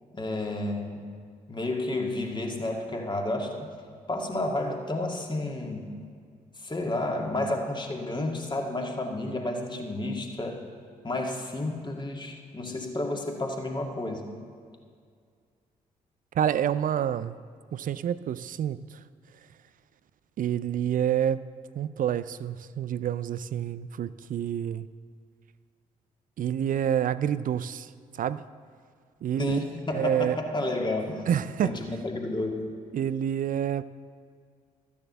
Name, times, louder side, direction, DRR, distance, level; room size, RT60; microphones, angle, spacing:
voice 1, 0.1-1.1 1.5-3.7 4.1-6.0 6.6-10.6 11.0-14.3 29.4-31.3 31.6-32.7, left 2 dB, 25° left, 1 dB, 2.0 m, -31 dB
voice 2, 16.3-17.4 17.7-19.0 20.4-21.4 21.8-24.9 26.4-28.5 29.2-29.6 29.9-30.4 31.3-31.8 32.9-33.8, right 9 dB, 50° right, 16 dB, 0.5 m, -28 dB
13.0 x 7.1 x 7.0 m, 2.1 s
hypercardioid pair, 40°, 18 cm